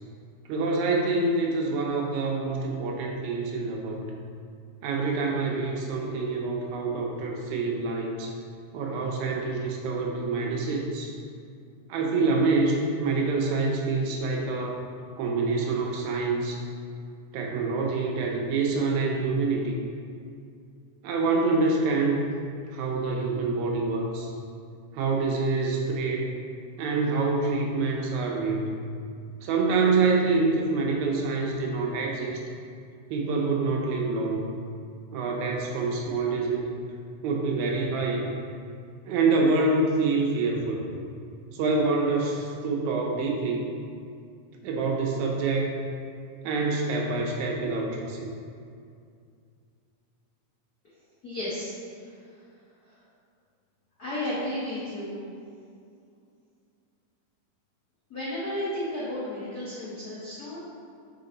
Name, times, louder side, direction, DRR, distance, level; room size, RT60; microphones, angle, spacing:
voice 1, 0.5-4.1 4.8-8.3 8.7-11.1 11.9-14.8 15.2-16.6 17.3-19.8 21.0-22.2 22.7-24.3 24.9-26.3 26.8-28.6 29.4-32.4 33.1-34.5 35.1-36.7 37.2-38.2 39.1-40.9 41.5-43.7 44.6-45.8 46.4-48.3, right 3 dB, 75° right, 0 dB, 2.1 m, -26 dB
voice 2, 51.2-51.7 54.0-55.2 58.1-60.6, left 1 dB, 75° left, -9 dB, 0.8 m, -32 dB
5.9 x 4.8 x 3.9 m, 2.3 s
omnidirectional pair, 3.5 m